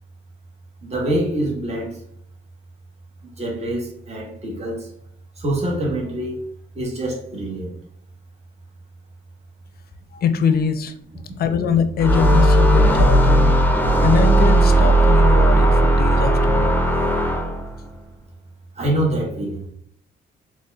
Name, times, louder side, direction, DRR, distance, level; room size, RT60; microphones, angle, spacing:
voice 1, 0.8-1.9 3.4-4.8 5.4-6.5 6.7-7.7 18.8-19.6, right 1 dB, 30° right, -1 dB, 1.2 m, -25 dB
voice 2, 10.1-10.9 11.4-13.5 14.0-16.8, left 6 dB, 50° left, 10 dB, 0.5 m, -22 dB
sound 1, 12.0-17.7, right 1 dB, 10° left, 0.6 m, -16 dB
4.2 x 3.0 x 2.3 m, 0.64 s
cardioid pair, 90°, 20 cm